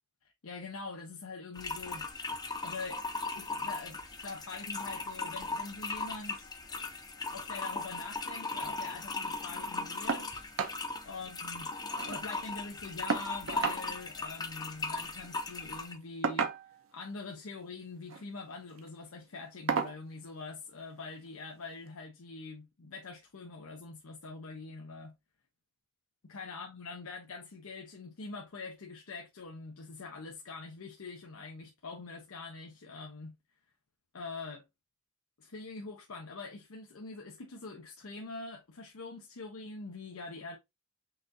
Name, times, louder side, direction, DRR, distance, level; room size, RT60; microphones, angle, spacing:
voice 1, 0.2-2.1 2.6-3.0 3.4-6.5 7.3-10.4 11.0-11.7 12.0-16.5 16.9-25.2 26.2-33.4 34.1-34.6 35.4-40.6, left 3 dB, 85° left, 0.8 m, -44 dB
sound 1, 1.6-16.0, left 3 dB, 20° left, 0.5 m, -38 dB
sound 2, 10.1-10.3 10.6-10.8 11.2-11.3 11.5-12.2 13.1-13.8 15.1-15.3 16.2-16.9 17.9-18.2 18.7-18.9 19.7-20.0 21.3-21.4 21.9-22.0, right 5 dB, 75° right, 0.7 m, -33 dB
5.6 x 2.6 x 2.7 m
head